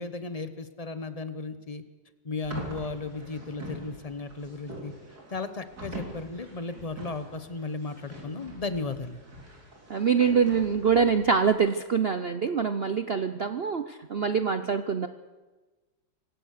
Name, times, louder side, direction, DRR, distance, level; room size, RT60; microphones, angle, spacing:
voice 1, 0.0-1.8 2.2-4.9 5.3-9.2, left 3 dB, 25° left, 11 dB, 0.8 m, -35 dB
sound 1, 2.4-11.5, equal, 50° right, 4.1 m, -44 dB
voice 2, 9.9-15.1, right 6 dB, 70° right, 9 dB, 0.5 m, -25 dB
26.0 x 16.0 x 6.6 m, 1.2 s
omnidirectional pair, 2.1 m